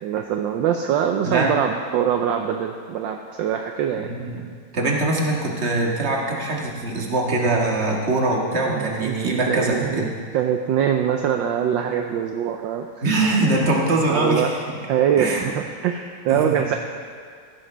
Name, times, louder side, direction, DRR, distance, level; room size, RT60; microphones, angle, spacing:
voice 1, 0.0-4.1 8.7-12.9 14.1-14.5 14.9-16.7, right 9 dB, 70° right, 4 dB, 1.3 m, -23 dB
voice 2, 4.0-4.4 4.7-10.1 13.0-14.6 15.2-15.4 16.3-16.7, right 2 dB, 35° right, -1 dB, 1.7 m, -22 dB
15.5 x 12.5 x 3.4 m, 2.1 s
omnidirectional pair, 2.3 m